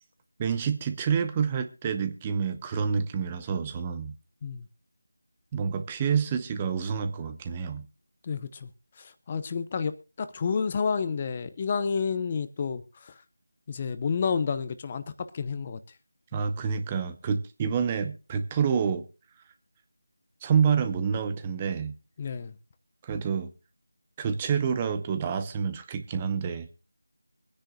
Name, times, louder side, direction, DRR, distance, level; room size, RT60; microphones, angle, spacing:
voice 1, 0.4-4.1 5.5-7.9 16.3-19.0 20.4-21.9 23.0-23.5 24.2-26.7, right 6 dB, 15° right, 0.8 m, -28 dB
voice 2, 8.2-8.7 9.0-13.1 13.7-15.8 22.2-22.5, left 5 dB, 25° left, 0.8 m, -30 dB
24.5 x 10.0 x 2.3 m
figure-of-eight pair, 165°, 0 cm